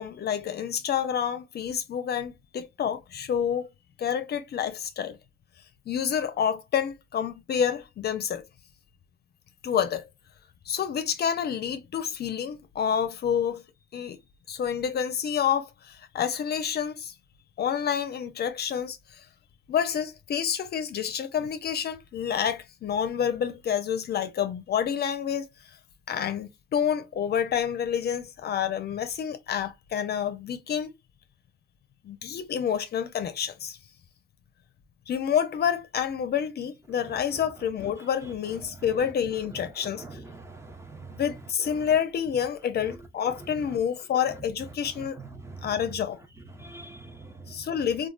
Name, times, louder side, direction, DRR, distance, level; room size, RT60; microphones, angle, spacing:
voice 1, 0.0-3.7 4.0-5.2 5.9-8.4 9.6-10.0 10.7-13.6 13.9-14.2 14.5-17.1 17.6-19.2 19.7-25.5 26.1-30.9 32.0-33.8 35.1-40.2 41.1-45.2 45.6-46.2 47.5-48.1, left 8 dB, 55° left, 0.5 m, -28 dB
voice 2, 40.0-41.2 45.0-45.7 46.5-47.6, right 3 dB, 15° right, 0.7 m, -44 dB
3.1 x 2.3 x 2.3 m
cardioid pair, 90°, 20 cm